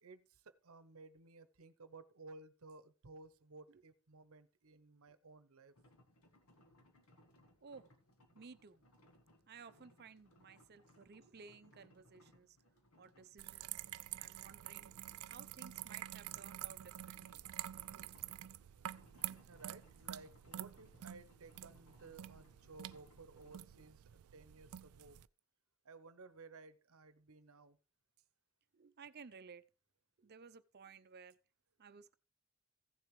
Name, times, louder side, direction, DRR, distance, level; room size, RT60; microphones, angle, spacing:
voice 1, 0.0-5.7 19.1-25.2 25.8-27.8, right 3 dB, 75° right, 0.9 m, -57 dB
sound 1, 5.7-23.9, left 1 dB, 80° left, 1.7 m, -68 dB
voice 2, 7.6-7.9 8.3-8.8 9.5-12.6 13.0-13.8 14.2-14.9 15.3-17.4 28.7-29.6 30.2-31.4 31.8-32.1, right 5 dB, 50° right, 0.6 m, -57 dB
sound 2, 13.4-25.3, right 13 dB, 90° right, 0.4 m, -48 dB
15.5 x 7.0 x 3.1 m
head